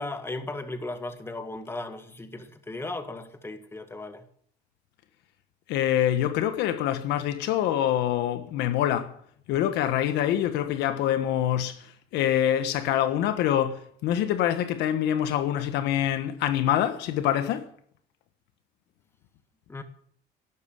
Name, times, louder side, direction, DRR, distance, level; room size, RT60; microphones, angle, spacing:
voice 1, 0.0-4.3 19.7-19.8, left 2 dB, 15° left, 1.8 m, -36 dB
voice 2, 5.7-9.1 9.5-11.8 12.1-17.7, left 11 dB, 90° left, 1.3 m, -25 dB
11.5 x 11.5 x 7.8 m
cardioid pair, 110°, 17 cm